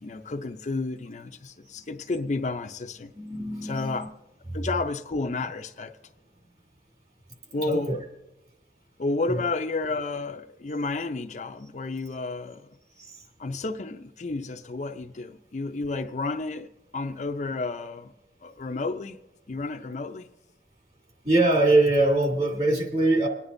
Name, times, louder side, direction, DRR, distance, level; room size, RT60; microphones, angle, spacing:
voice 1, 0.0-3.1 3.6-4.1 4.5-6.0 7.5-8.0 9.0-12.7 13.4-18.1 18.4-19.2 19.5-20.3, left 3 dB, 40° left, 0.5 m, -31 dB
voice 2, 3.1-4.0 7.6-8.0 9.3-9.4 13.0-13.1 21.2-23.3, right 2 dB, 35° right, 2.3 m, -22 dB
27.5 x 9.7 x 2.6 m
head